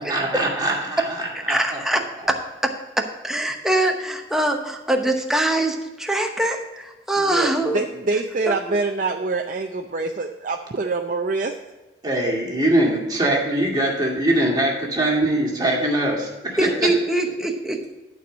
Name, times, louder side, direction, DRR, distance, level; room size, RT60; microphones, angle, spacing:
voice 1, 0.0-1.0 1.5-1.6 12.0-16.9, right 1 dB, 25° right, -2 dB, 2.2 m, -22 dB
voice 2, 1.5-7.8 8.5-8.8 16.6-17.9, right 1 dB, 5° right, 3 dB, 0.9 m, -23 dB
voice 3, 7.2-11.5, right 3 dB, 45° right, 3 dB, 0.5 m, -25 dB
11.5 x 4.7 x 6.2 m, 1.2 s
head